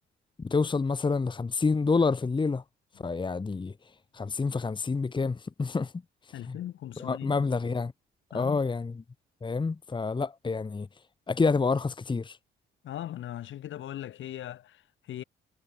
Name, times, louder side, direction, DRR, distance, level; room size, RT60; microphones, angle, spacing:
voice 1, 0.4-2.6 3.0-3.7 4.1-5.9 7.0-7.9 8.3-8.9 9.4-10.9 11.3-12.4, left 4 dB, 25° left, 1.2 m, -28 dB
voice 2, 6.3-7.5 8.3-8.7 12.8-15.2, left 12 dB, 75° left, 6.1 m, -39 dB
cardioid pair, 90°, 20 cm